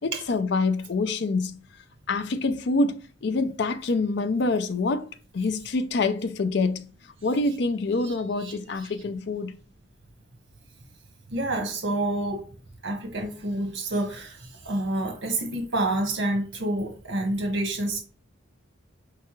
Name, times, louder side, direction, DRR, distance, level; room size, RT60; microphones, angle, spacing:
voice 1, 0.0-1.6 2.1-5.1 5.3-6.9 7.2-9.5, left 3 dB, 55° left, 0.4 m, -26 dB
voice 2, 8.0-8.9 11.3-12.5 12.8-18.0, right 1 dB, 60° right, 1.2 m, -28 dB
4.8 x 3.3 x 3.1 m
head